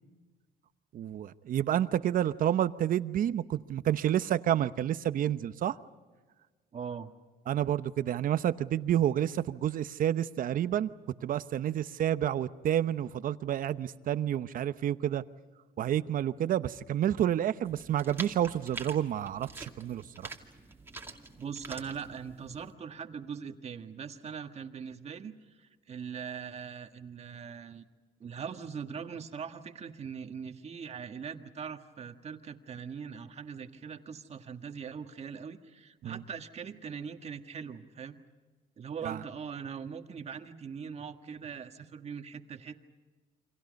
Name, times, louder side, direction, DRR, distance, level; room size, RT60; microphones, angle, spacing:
voice 1, 0.9-5.8 7.5-10.9 11.2-15.2 15.8-20.3 36.0-36.2 39.0-39.2, right 11 dB, 55° right, 13 dB, 0.9 m, -29 dB
voice 2, 6.7-7.1 21.4-27.8 28.2-38.2 38.8-42.8, right 6 dB, 40° right, 6 dB, 1.7 m, -41 dB
sound 1, 17.6-22.7, right 3 dB, 15° right, 2.4 m, -46 dB
29.0 x 25.5 x 5.3 m, 1.3 s
cardioid pair, 110°, 17 cm